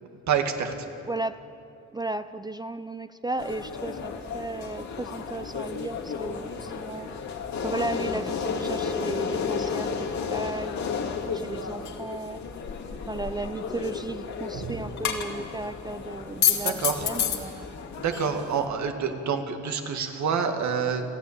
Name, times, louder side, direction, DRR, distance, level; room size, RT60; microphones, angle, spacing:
voice 1, 0.3-0.7 14.5-14.7 16.6-17.1 18.0-21.0, right 6 dB, 70° right, 5 dB, 2.2 m, -27 dB
voice 2, 1.1-1.4 1.9-7.1 7.6-9.9 10.3-11.0 11.3-12.4 13.1-17.7, right 2 dB, 15° right, 11 dB, 0.5 m, -35 dB
sound 1, 3.4-18.7, left 6 dB, 65° left, 2.4 m, -31 dB
29.5 x 10.0 x 8.8 m, 3.0 s
cardioid pair, 90°, 30 cm